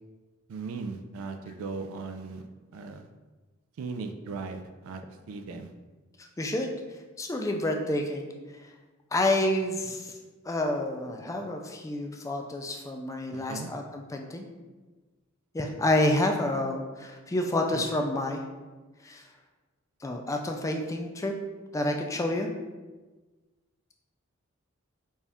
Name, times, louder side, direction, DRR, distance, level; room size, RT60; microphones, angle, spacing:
voice 1, 0.5-2.5 2.7-3.1 3.8-5.7 13.3-13.7 17.7-17.8, right 4 dB, 85° right, 7 dB, 0.3 m, -38 dB
voice 2, 6.2-8.7 9.1-10.2 10.4-14.5 15.5-18.4 19.0-19.3 20.0-21.3 21.7-22.5, left 1 dB, 15° left, 3 dB, 0.3 m, -29 dB
4.1 x 2.4 x 3.4 m, 1.3 s
head